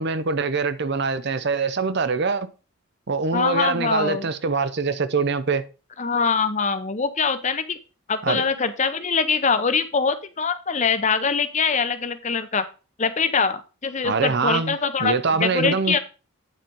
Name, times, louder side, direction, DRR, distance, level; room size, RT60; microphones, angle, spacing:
voice 1, 0.0-2.5 3.1-5.6 8.2-8.4 14.0-16.0, right 4 dB, 50° right, 0.6 m, -24 dB
voice 2, 3.3-4.3 6.0-7.8 8.1-12.6 13.0-16.0, left 5 dB, 35° left, 0.7 m, -23 dB
9.2 x 4.4 x 5.2 m
head